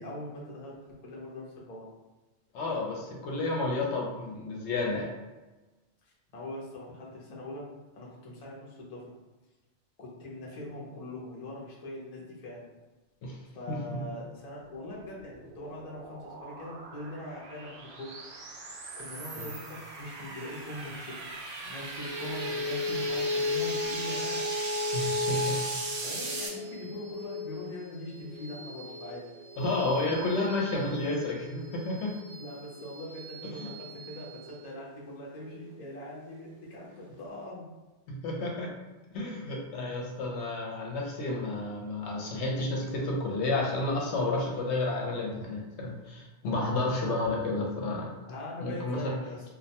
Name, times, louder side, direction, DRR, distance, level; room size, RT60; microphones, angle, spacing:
voice 1, 0.0-1.9 3.1-3.2 6.0-9.0 10.0-12.7 13.5-18.1 18.9-21.2 21.6-24.5 26.0-29.3 32.4-37.7 39.1-39.3 48.3-49.4, left 1 dB, 45° left, -4 dB, 0.5 m, -42 dB
voice 2, 2.5-5.1 13.2-13.4 13.7-14.0 19.4-19.5 24.9-25.6 29.6-32.1 33.4-33.7 38.1-38.7 39.1-48.1 48.6-49.1, left 2 dB, 75° left, -2 dB, 0.8 m, -31 dB
sound 1, 14.8-26.5, right 3 dB, 60° right, 0.7 m, -39 dB
sound 2, 22.0-36.7, left 2 dB, 25° right, 0.6 m, -36 dB
2.2 x 2.1 x 2.7 m, 1.1 s
omnidirectional pair, 1.2 m